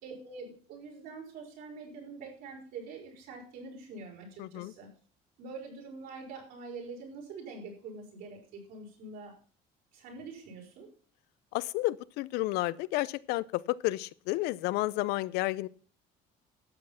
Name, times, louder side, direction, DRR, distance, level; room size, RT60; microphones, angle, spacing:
voice 1, 0.0-4.9 5.4-9.4 9.9-10.9, right 4 dB, 65° right, 0 dB, 5.7 m, -45 dB
voice 2, 4.4-4.7 11.5-15.7, left 18 dB, 75° left, 19 dB, 0.6 m, -31 dB
12.5 x 8.7 x 5.7 m, 0.41 s
cardioid pair, 175°, 17 cm